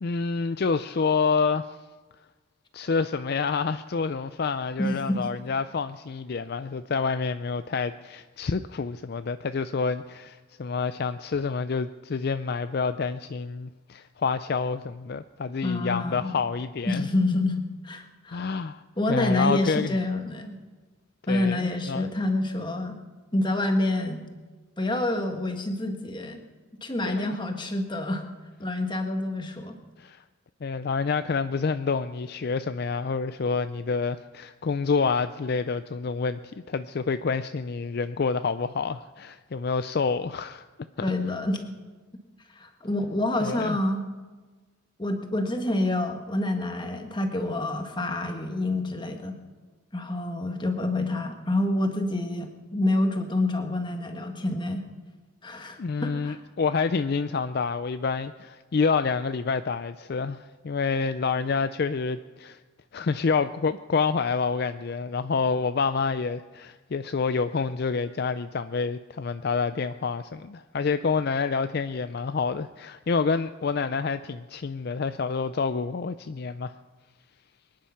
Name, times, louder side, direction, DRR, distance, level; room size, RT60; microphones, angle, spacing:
voice 1, 0.0-1.8 2.7-17.1 18.3-18.8 19.1-20.0 21.3-22.1 27.0-27.4 30.0-30.2 30.6-36.4 36.7-40.7 41.0-41.1 43.4-43.8 55.8-62.6 62.9-76.8, left 5 dB, 50° left, 11 dB, 0.4 m, -28 dB
voice 2, 4.8-5.3 15.6-16.3 16.9-18.6 19.0-20.6 21.3-23.0 23.3-24.2 24.8-26.4 26.8-28.3 28.6-29.7 41.0-41.6 42.5-44.0 45.0-49.4 49.9-54.8 55.4-56.4, left 2 dB, 20° left, 5 dB, 1.5 m, -27 dB
23.5 x 10.5 x 5.8 m, 1.3 s
head